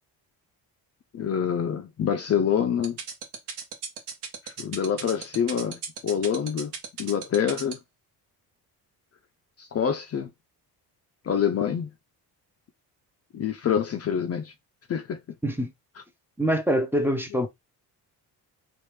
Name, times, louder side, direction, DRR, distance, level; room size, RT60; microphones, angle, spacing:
voice 1, 1.1-3.0 4.4-6.7 7.0-7.8 9.6-10.3 11.2-11.9 13.3-14.5 14.9-15.2, left 8 dB, 40° left, 0.5 m, -26 dB
sound 1, 2.8-7.7, right 7 dB, 80° right, 1.1 m, -34 dB
voice 2, 16.4-17.5, equal, 5° right, 0.6 m, -24 dB
3.2 x 2.5 x 3.2 m
cardioid pair, 105°, 40 cm